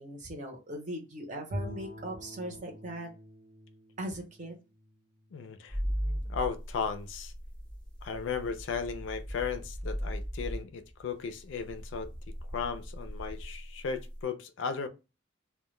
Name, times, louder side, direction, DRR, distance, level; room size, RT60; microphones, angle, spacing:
voice 1, 0.0-3.1 4.0-4.6, right 1 dB, 40° right, 0.6 m, -39 dB
Bowed string instrument, 1.5-5.7, left 1 dB, 80° right, 0.8 m, -44 dB
voice 2, 5.3-5.8 6.3-7.3 8.0-12.1 12.5-14.9, left 6 dB, 70° left, 0.4 m, -35 dB
sound 1, 5.7-14.2, equal, 5° left, 0.5 m, -38 dB
2.1 x 2.1 x 3.0 m
head